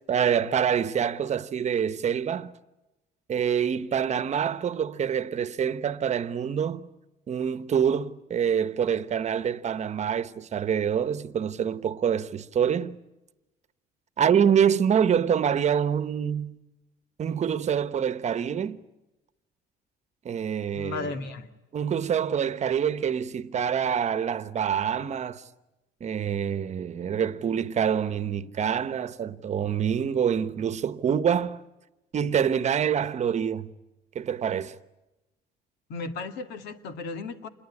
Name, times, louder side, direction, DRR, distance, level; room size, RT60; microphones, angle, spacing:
voice 1, 0.1-2.5 3.3-6.9 7.3-13.0 14.2-16.6 17.2-18.8 20.2-21.1 21.7-25.4 26.0-31.6 32.1-33.7 34.1-34.7, right 8 dB, 45° right, 1.1 m, -26 dB
voice 2, 20.7-21.5 35.9-37.5, left 4 dB, 85° left, 2.2 m, -35 dB
27.5 x 21.5 x 9.9 m
cardioid pair, 110°, 17 cm